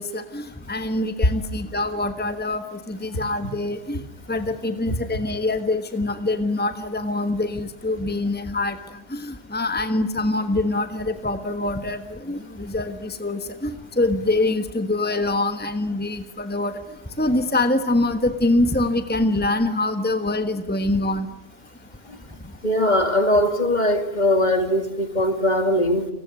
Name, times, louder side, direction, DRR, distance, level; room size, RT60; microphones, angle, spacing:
voice 1, 0.0-4.0 4.3-16.8 17.2-21.3, left 2 dB, 10° left, 8 dB, 1.3 m, -24 dB
voice 2, 22.6-26.1, left 1 dB, 45° left, 8 dB, 2.6 m, -20 dB
29.5 x 19.5 x 9.4 m, 0.92 s
omnidirectional pair, 1.1 m